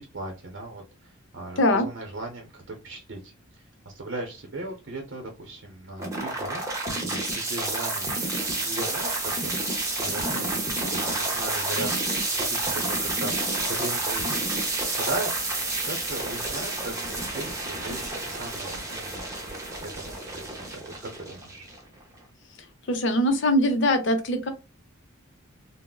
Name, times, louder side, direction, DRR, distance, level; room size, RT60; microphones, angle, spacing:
voice 1, 0.1-6.7 7.0-8.1 8.6-10.6 10.9-13.3 13.6-14.7 15.0-15.3 15.8-21.7, right 2 dB, 55° right, 1 dB, 0.6 m, -38 dB
sound 1, 6.0-22.0, right 2 dB, 15° right, 0.7 m, -29 dB
voice 2, 22.9-24.5, left 1 dB, 55° left, 8 dB, 0.6 m, -22 dB
3.6 x 2.0 x 2.2 m, 0.28 s
head